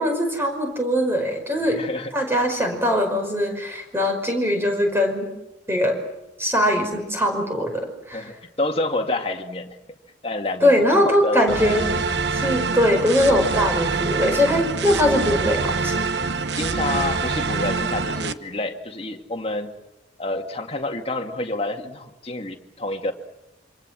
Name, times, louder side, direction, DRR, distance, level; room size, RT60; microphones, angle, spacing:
voice 1, 0.0-1.8 2.1-5.3 5.7-6.0 6.4-8.3 10.6-11.9 12.3-16.0, equal, 15° right, 4 dB, 5.4 m, -21 dB
voice 2, 1.7-2.1 8.1-9.8 10.2-10.7 11.0-12.0 16.5-19.7 20.2-23.1, left 2 dB, 35° left, 3 dB, 2.2 m, -28 dB
sound 1, 11.5-18.3, right 4 dB, 70° right, 1.0 m, -25 dB
27.5 x 25.5 x 7.7 m, 0.94 s
head